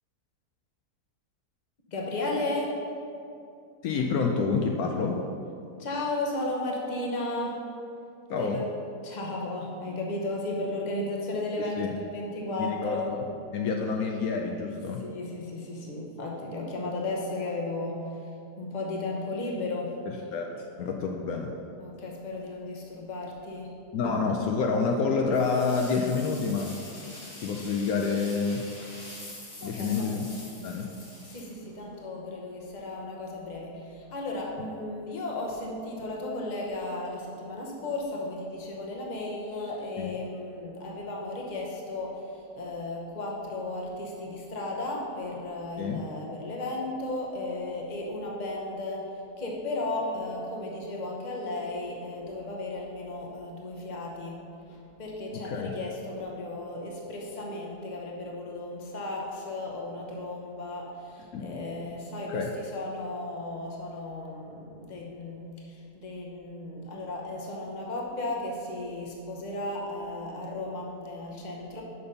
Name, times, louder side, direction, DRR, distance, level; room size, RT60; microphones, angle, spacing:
voice 1, 1.9-2.8 5.8-7.6 8.3-8.6 9.0-13.1 15.0-18.1 18.6-20.0 20.9-21.2 21.8-23.8 29.6-30.1 31.3-71.8, left 2 dB, 35° left, -1 dB, 1.0 m, -35 dB
voice 2, 3.8-5.2 8.3-8.6 11.8-11.9 12.6-13.2 13.5-15.0 20.3-20.4 20.8-21.5 23.9-26.7 27.4-28.6 29.6-30.3 30.6-30.9 40.0-40.1 45.8-46.0 55.3-55.7 61.3-61.6 62.3-62.5, left 4 dB, 70° left, 1 dB, 1.0 m, -28 dB
sound 1, 25.3-32.0, left 1 dB, 50° left, 2.0 m, -45 dB
6.8 x 5.2 x 5.4 m, 2.6 s
omnidirectional pair, 1.7 m